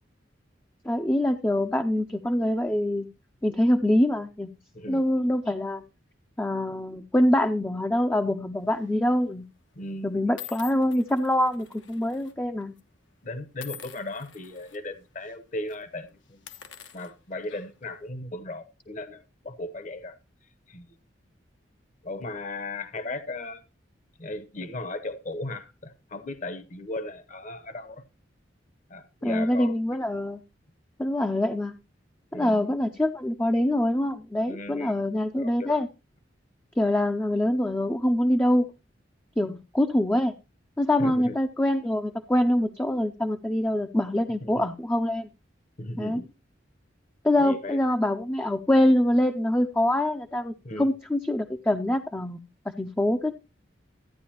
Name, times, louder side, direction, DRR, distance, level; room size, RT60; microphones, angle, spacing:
voice 1, 0.8-3.1 3.4-4.5 4.9-5.8 6.4-9.4 10.0-12.7 29.2-30.4 31.0-31.7 32.3-35.9 36.8-38.7 39.4-40.3 40.8-45.3 46.0-46.2 47.2-52.4 52.8-53.3, left 1 dB, 10° left, 0.4 m, -24 dB
sound 1, 8.7-9.0 9.7-9.8 10.4-12.3 12.6-12.8 13.6-14.8 15.2-15.4 15.6-15.8 16.3-17.9, left 10 dB, 90° left, 1.2 m, -46 dB
voice 2, 9.8-10.1 13.2-16.4 16.9-20.1 20.7-20.9 22.0-23.6 24.2-28.0 28.9-29.7 32.3-32.7 34.5-34.9 35.4-35.8 39.4-39.6 41.0-41.4 44.4-44.7 45.8-46.3 47.4-47.8 50.6-50.9, left 2 dB, 45° left, 0.8 m, -36 dB
13.5 x 9.4 x 2.8 m
head